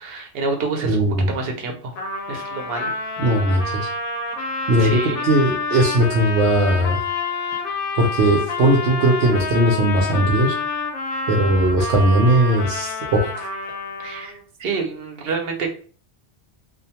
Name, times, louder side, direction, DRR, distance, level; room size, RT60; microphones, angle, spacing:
voice 1, 0.0-1.0 1.3-1.9 2.3-2.9 3.5-3.6 4.8-5.3 14.0-15.7, right 4 dB, 65° right, 3 dB, 0.8 m, -28 dB
voice 2, 0.8-1.3 3.2-3.9 4.7-7.0 8.0-10.5 11.3-13.3, right 1 dB, 90° right, -2 dB, 0.9 m, -18 dB
Trumpet, 2.0-14.4, left 3 dB, 60° left, 0.8 m, -28 dB
2.4 x 2.2 x 2.7 m, 0.41 s
omnidirectional pair, 1.1 m